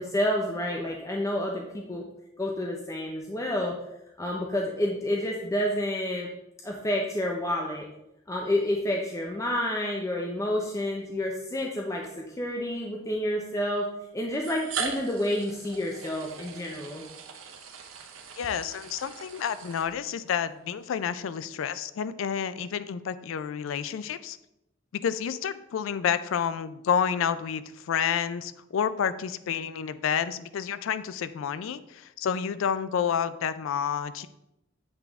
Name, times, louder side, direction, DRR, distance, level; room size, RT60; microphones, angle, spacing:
voice 1, 0.0-2.0 2.4-3.7 4.2-6.3 6.6-7.9 8.3-13.9 14.1-17.0, left 1 dB, 15° left, 0 dB, 0.5 m, -29 dB
sound 1, 11.0-11.1 12.0-12.1 13.3-13.4 14.3-20.3, right 5 dB, 90° right, 0.7 m, -39 dB
voice 2, 18.4-24.4 24.9-34.3, left 7 dB, 75° left, 14 dB, 0.3 m, -29 dB
8.0 x 3.5 x 3.5 m, 0.87 s
head